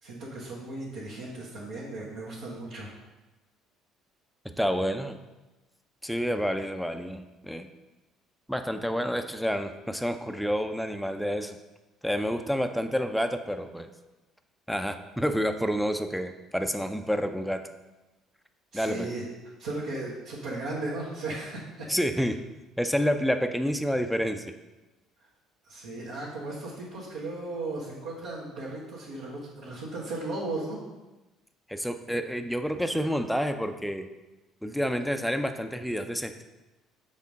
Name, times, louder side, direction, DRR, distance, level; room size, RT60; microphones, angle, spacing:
voice 1, 0.0-2.9 18.7-19.2 19.6-21.9 25.6-30.8, right 2 dB, 65° right, -8 dB, 1.5 m, -36 dB
voice 2, 4.6-5.2 6.0-7.7 8.5-11.6 12.0-13.9 14.7-17.6 18.7-19.1 21.9-22.4 22.8-24.4 31.7-34.1 34.6-36.4, equal, ahead, 7 dB, 0.6 m, -29 dB
7.3 x 3.7 x 5.4 m, 1.1 s
figure-of-eight pair, 55°, 0 cm